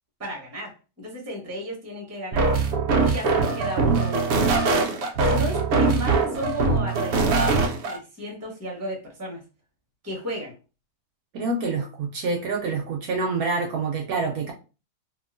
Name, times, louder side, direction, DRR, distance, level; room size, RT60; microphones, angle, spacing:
voice 1, 0.2-0.7 1.0-2.5 3.0-4.3 4.6-7.6 7.8-9.4 10.0-10.5, left 1 dB, 15° right, 0.6 m, -33 dB
sound 1, 2.3-8.0, right 4 dB, 90° right, 0.5 m, -22 dB
voice 2, 5.7-6.1 11.3-14.5, right 3 dB, 70° right, 0.9 m, -27 dB
2.9 x 2.5 x 2.5 m
omnidirectional pair, 1.8 m